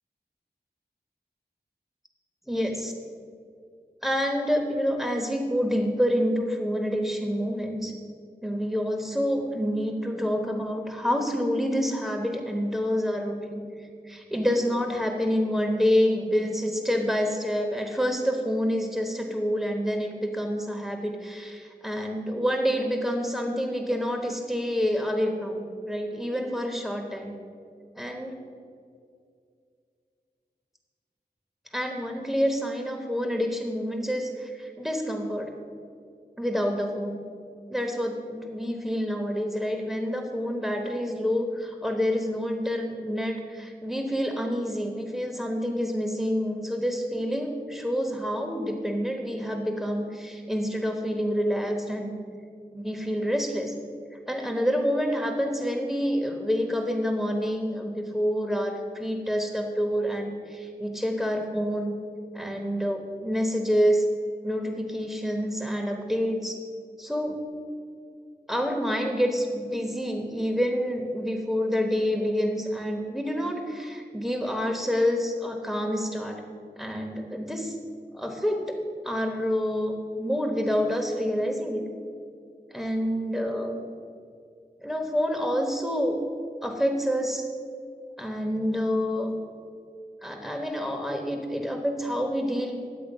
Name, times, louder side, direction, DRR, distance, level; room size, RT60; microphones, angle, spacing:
voice 1, 2.5-2.9 4.0-7.9 8.4-27.3 27.9-28.3 31.7-35.5 36.4-37.2 37.7-52.1 52.7-53.7 54.3-61.9 62.3-64.1 64.4-66.6 67.0-67.4 68.5-76.4 76.8-77.8 78.1-78.8 79.0-81.9 82.7-83.8 84.8-86.2 86.6-87.5 88.2-89.3 90.2-92.8, equal, ahead, 2 dB, 1.1 m, -27 dB
10.5 x 7.7 x 5.4 m, 2.4 s
wide cardioid pair, 40°, 17 cm